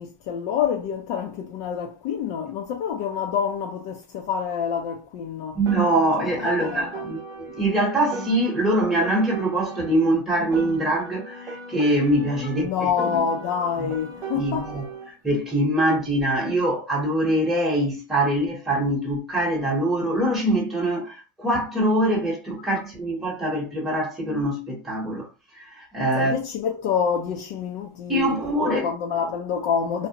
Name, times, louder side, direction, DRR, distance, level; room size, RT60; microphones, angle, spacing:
voice 1, 0.0-5.6 6.2-7.1 12.6-14.7 26.1-28.4 28.6-30.1, left 7 dB, 60° left, 0.5 m, -27 dB
voice 2, 5.5-12.7 13.8-13.9 14.4-14.8 15.2-25.3 25.6-26.3 28.1-28.9, right 1 dB, ahead, 0.9 m, -23 dB
Piano, 5.6-10.1 10.5-15.1, right 3 dB, 30° right, 0.7 m, -37 dB
2.6 x 2.1 x 2.7 m
supercardioid pair, 140°, 12 cm